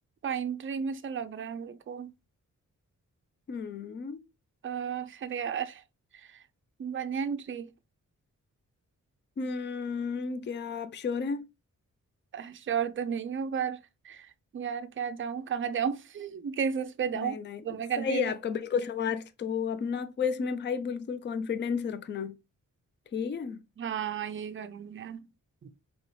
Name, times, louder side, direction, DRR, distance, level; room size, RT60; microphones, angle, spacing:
voice 1, 0.2-2.1 4.6-5.8 6.8-7.7 12.3-13.8 14.0-14.3 14.5-17.4 17.6-18.2 23.8-25.2 25.6-25.7, right 7 dB, 40° right, 0.5 m, -33 dB
voice 2, 3.5-4.2 9.4-11.5 17.1-22.4 23.1-23.6, left 6 dB, 35° left, 0.4 m, -32 dB
5.5 x 3.0 x 3.1 m
wide cardioid pair, 170°, 31 cm